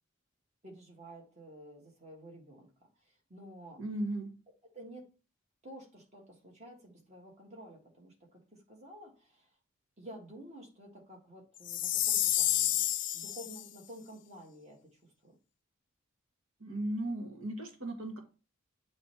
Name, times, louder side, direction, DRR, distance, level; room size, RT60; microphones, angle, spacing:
voice 1, 0.6-2.7 3.0-3.8 4.7-5.1 5.6-9.5 10.0-15.3, right 1 dB, 35° right, 0 dB, 1.5 m, -51 dB
voice 2, 3.8-4.3 16.6-18.2, right 1 dB, 85° right, 3 dB, 1.4 m, -36 dB
Chime, 11.6-13.6, left 13 dB, 40° left, 0.3 m, -29 dB
8.5 x 3.2 x 4.4 m, 0.35 s
head